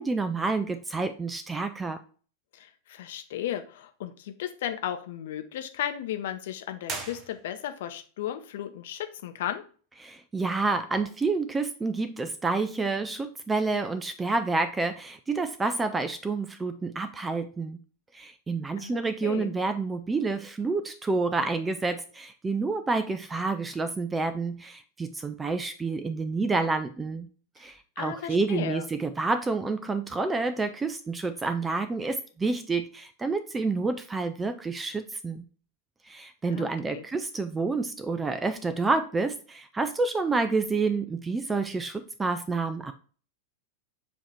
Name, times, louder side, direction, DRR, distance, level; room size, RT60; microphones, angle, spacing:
voice 1, 0.0-2.0 10.0-17.8 18.1-27.3 27.6-35.4 36.0-42.9, right 3 dB, 15° right, 10 dB, 0.4 m, -29 dB
voice 2, 2.9-9.6 18.8-19.5 28.0-28.8 36.5-37.0, left 11 dB, 55° left, 7 dB, 0.8 m, -35 dB
sound 1, 6.8-7.9, right 4 dB, 30° right, 0.9 m, -39 dB
7.0 x 2.8 x 4.8 m, 0.40 s
figure-of-eight pair, 90°, 0 cm